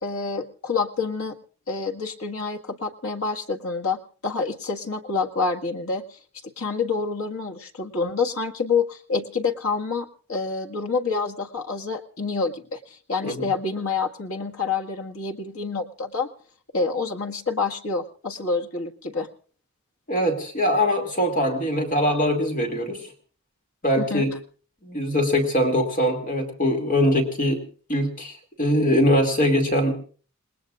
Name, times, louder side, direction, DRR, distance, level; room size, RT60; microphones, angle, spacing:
voice 1, 0.0-1.4 1.7-6.2 6.6-16.3 16.7-19.3 24.0-24.3, left 4 dB, 80° left, 3 dB, 1.7 m, -27 dB
voice 2, 20.1-23.0 23.8-24.3 24.8-27.6 27.9-29.9, equal, 40° left, 3 dB, 2.4 m, -22 dB
28.0 x 19.5 x 2.4 m, 0.40 s
head